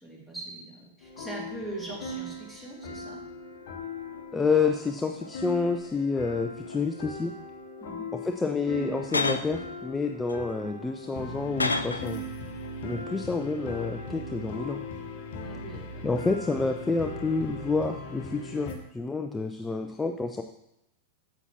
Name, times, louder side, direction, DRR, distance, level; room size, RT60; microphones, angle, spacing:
voice 1, 0.0-3.2 7.8-8.1 15.4-16.1, right 2 dB, 10° right, -3 dB, 2.2 m, -41 dB
sound 1, 1.0-18.7, left 2 dB, 50° left, 1.0 m, -39 dB
sound 2, 1.2-1.3 1.9-2.4 3.2-4.7 5.0-6.1 6.5-7.1 7.8-8.0 8.8-9.6 10.3-12.2 12.5-12.7, left 3 dB, 80° left, 0.4 m, -35 dB
voice 2, 4.3-7.3 8.2-12.3 12.8-14.8 16.0-20.4, left 4 dB, 10° left, 6 dB, 0.4 m, -29 dB
8.0 x 7.0 x 2.9 m, 0.83 s
figure-of-eight pair, 90°, 0 cm